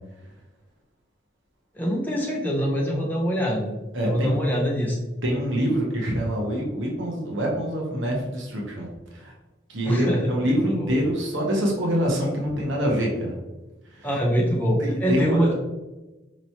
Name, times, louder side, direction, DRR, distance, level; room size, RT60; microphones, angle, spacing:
voice 1, 1.7-3.7 4.0-5.0 9.8-10.2 10.7-10.9 14.0-15.5, equal, 10° left, -3 dB, 0.7 m, -24 dB
voice 2, 3.9-4.4 5.2-9.3 9.7-13.3 13.8-14.1 14.8-15.5, equal, 75° right, -1 dB, 0.8 m, -25 dB
4.5 x 3.0 x 2.8 m, 1.1 s
head